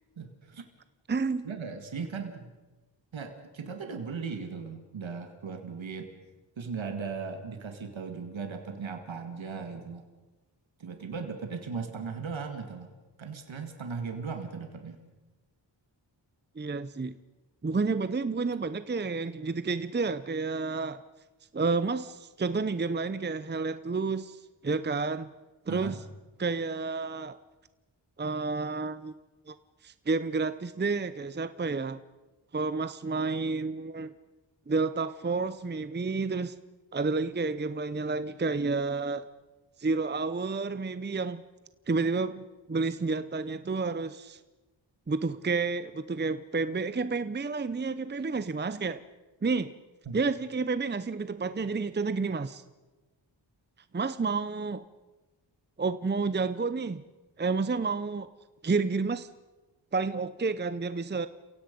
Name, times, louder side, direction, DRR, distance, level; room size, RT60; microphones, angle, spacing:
voice 1, 0.2-0.6 1.4-2.5 3.1-6.1 6.6-10.1 10.8-12.9 13.2-15.0 25.7-25.9 50.1-50.2, right 5 dB, 85° right, 5 dB, 2.0 m, -37 dB
voice 2, 1.1-1.5 16.6-17.2 17.6-21.0 21.5-25.3 25.7-26.0 26.4-27.4 28.2-29.1 29.5-29.6 29.8-32.0 32.5-34.1 34.7-36.6 36.9-39.3 39.8-41.4 41.9-44.4 45.1-49.0 49.4-49.7 50.1-52.6 53.9-54.8 55.8-57.0 57.4-58.3 58.6-59.3 59.9-61.3, right 4 dB, 25° right, 13 dB, 0.7 m, -30 dB
30.0 x 17.0 x 5.3 m, 1.2 s
wide cardioid pair, 70°, 45 cm